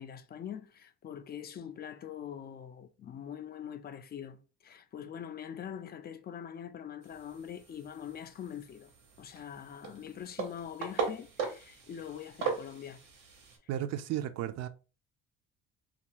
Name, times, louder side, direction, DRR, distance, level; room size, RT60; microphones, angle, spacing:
voice 1, 0.0-8.9 9.2-13.0, left 9 dB, 35° left, 0.4 m, -43 dB
sound 1, 7.0-13.6, right 5 dB, 90° right, 0.9 m, -39 dB
voice 2, 13.7-14.7, right 12 dB, 60° right, 0.4 m, -34 dB
2.6 x 2.4 x 2.9 m
cardioid pair, 110°, 30 cm